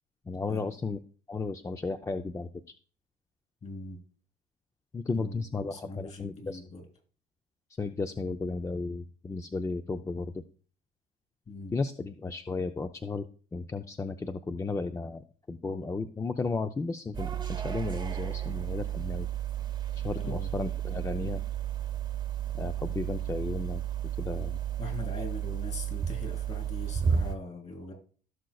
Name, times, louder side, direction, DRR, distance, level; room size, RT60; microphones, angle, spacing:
voice 1, 0.3-1.0 1.3-2.5 4.9-6.6 7.8-10.4 11.7-13.2 13.5-19.3 20.0-21.4 22.5-23.8 24.2-24.6, left 3 dB, 20° left, 7 dB, 0.5 m, -34 dB
voice 2, 3.6-4.0 5.1-6.9 11.5-11.8 20.2-20.5 24.8-27.9, left 2 dB, 40° left, 4 dB, 3.5 m, -41 dB
sound 1, 17.1-27.3, right 9 dB, 25° right, 1.0 m, -32 dB
16.0 x 6.3 x 2.3 m, 0.41 s
cardioid pair, 110°, 17 cm